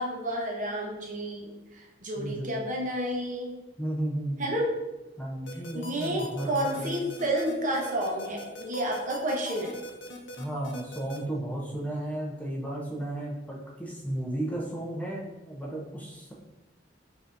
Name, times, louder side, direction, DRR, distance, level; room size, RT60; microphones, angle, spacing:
voice 1, 0.0-3.5 4.4-4.7 5.7-9.7, equal, 45° right, -1 dB, 0.8 m, -30 dB
voice 2, 2.2-2.6 3.8-4.5 5.2-7.0 10.4-16.3, right 1 dB, 10° left, -4 dB, 0.6 m, -34 dB
sound 1, 5.5-11.2, equal, 75° left, 0.6 m, -42 dB
5.4 x 2.7 x 2.5 m, 1.0 s
head